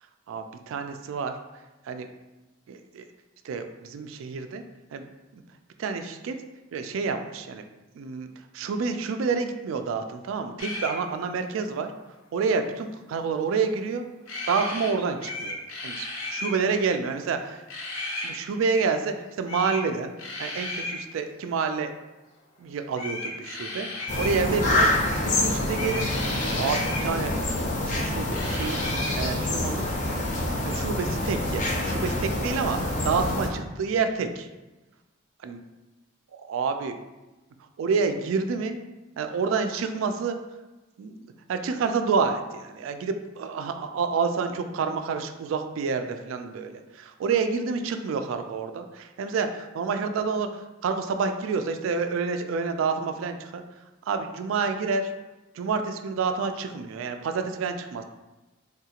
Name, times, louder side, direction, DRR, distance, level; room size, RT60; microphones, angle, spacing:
voice 1, 0.3-1.3 1.8-2.1 2.7-3.0 3.4-4.6 4.9-5.1 5.3-5.4 5.8-6.4 6.7-7.6 7.9-8.3 8.5-11.9 12.3-14.1 14.5-15.6 15.8-17.6 18.2-21.9 22.6-26.1 26.6-27.3 27.9-28.8 29.2-29.9 30.6-32.8 33.0-34.5 35.4-35.6 36.3-37.0 37.8-38.8 39.2-40.4 41.0-53.6 54.1-55.1 55.5-58.0, right 5 dB, 80° right, 7 dB, 0.3 m, -28 dB
sound 1, 10.6-11.0 14.3-14.9 15.2-16.6 17.7-18.3 19.5-19.8 20.2-21.0 22.9-24.4 25.7-27.1 28.3-29.2, left 2 dB, 80° left, 0.6 m, -34 dB
sound 2, 24.1-33.5, left 1 dB, 40° left, 0.5 m, -26 dB
3.6 x 2.4 x 2.8 m, 1.1 s
head